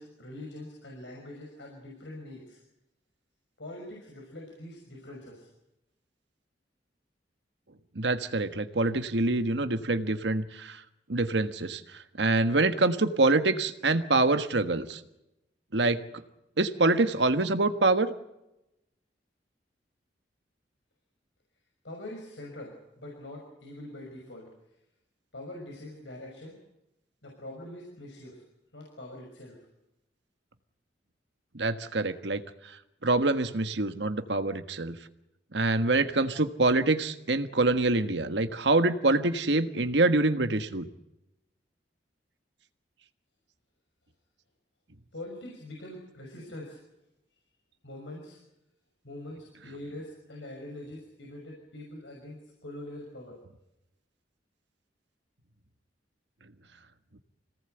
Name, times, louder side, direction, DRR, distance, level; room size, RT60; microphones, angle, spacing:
voice 1, 0.0-2.6 3.6-5.5 21.8-24.5 25.3-26.6 27.2-28.4 28.7-29.7 45.1-46.8 47.8-48.4 49.0-53.4, left 1 dB, 90° left, 0 dB, 6.0 m, -43 dB
voice 2, 7.9-10.8 11.1-11.8 12.2-15.0 15.7-16.0 16.6-18.1 31.5-32.4 33.0-35.0 35.5-40.9, right 2 dB, 75° right, 9 dB, 1.5 m, -25 dB
26.0 x 18.5 x 8.0 m, 0.90 s
head